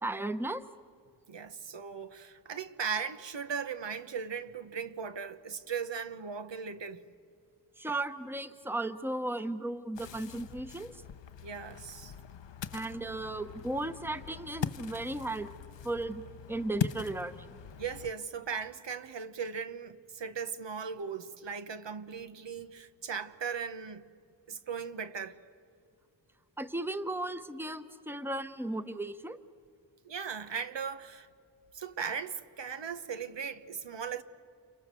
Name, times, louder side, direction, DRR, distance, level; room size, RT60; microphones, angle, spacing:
voice 1, 0.0-0.6 7.8-11.0 12.7-15.5 15.8-16.2 16.5-17.5 26.6-29.4, right 2 dB, 5° right, 0.9 m, -35 dB
voice 2, 1.3-7.0 11.4-12.1 17.8-24.1 24.5-25.4 30.0-31.3 31.7-34.2, right 6 dB, 90° right, 1.2 m, -38 dB
Ocean, 9.9-18.1, left 7 dB, 85° left, 0.8 m, -41 dB
29.5 x 29.0 x 6.8 m
wide cardioid pair, 90°, 42 cm